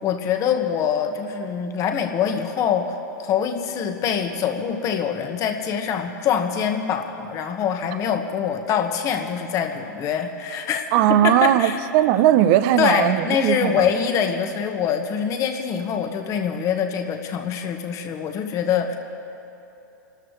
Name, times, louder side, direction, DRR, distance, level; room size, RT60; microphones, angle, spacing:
voice 1, 0.0-2.9 3.2-10.8 11.2-11.8 12.8-19.0, left 7 dB, 30° left, 5 dB, 1.5 m, -24 dB
voice 2, 10.9-13.8, right 12 dB, 45° right, 11 dB, 0.7 m, -18 dB
28.5 x 13.0 x 3.3 m, 2.9 s
hypercardioid pair, 125°, 10 cm